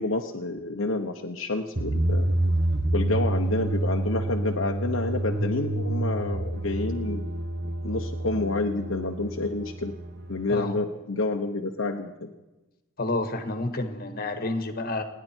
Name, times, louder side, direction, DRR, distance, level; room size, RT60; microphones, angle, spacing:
voice 1, 0.0-2.3 2.9-7.3 7.8-9.9 10.3-12.3, left 2 dB, 65° left, 1 dB, 1.1 m, -29 dB
sound 1, 1.8-10.6, right 1 dB, 55° right, 1.3 m, -28 dB
voice 2, 13.0-15.0, left 2 dB, 45° left, 7 dB, 1.7 m, -29 dB
30.0 x 10.5 x 4.5 m, 1.0 s
head